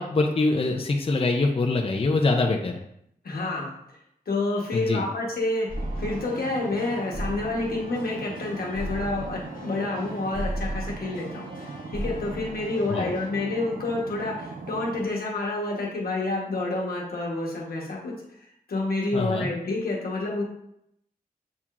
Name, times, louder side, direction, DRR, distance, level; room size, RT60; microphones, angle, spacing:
voice 1, 0.0-2.8 4.7-5.0 12.9-13.1 19.1-19.5, left 3 dB, 40° left, 2 dB, 0.5 m, -24 dB
voice 2, 3.2-3.7 4.3-5.7 6.0-18.1 18.7-20.4, left 2 dB, 85° left, -2 dB, 1.1 m, -29 dB
sound 1, 5.7-13.3, equal, 65° left, 1.3 m, -37 dB
sound 2, 5.7-15.1, right 4 dB, 65° right, 0.5 m, -39 dB
7.2 x 2.8 x 2.4 m, 0.75 s
cardioid pair, 55°, 15 cm